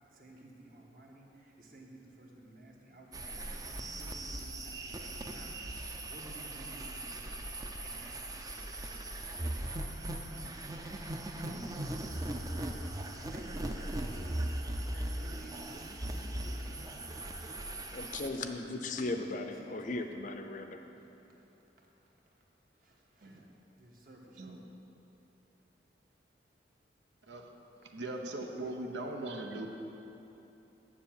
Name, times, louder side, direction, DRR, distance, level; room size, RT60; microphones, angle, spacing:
voice 1, 0.1-5.6 6.1-7.4 7.8-9.3 10.2-10.9 11.3-12.2 13.2-14.5 14.9-15.7 16.1-17.5 18.3-20.1 21.0-21.5 21.8-21.9 22.8-23.4 23.8-24.7, right 1 dB, 50° right, -1 dB, 1.4 m, -54 dB
sound 1, 3.1-18.3, right 1 dB, 20° right, 0.5 m, -39 dB
voice 2, 17.9-20.8, left 2 dB, 45° left, 6 dB, 0.6 m, -37 dB
voice 3, 27.9-29.7, right 2 dB, 80° right, 2 dB, 0.9 m, -39 dB
7.5 x 7.1 x 7.2 m, 3.0 s
head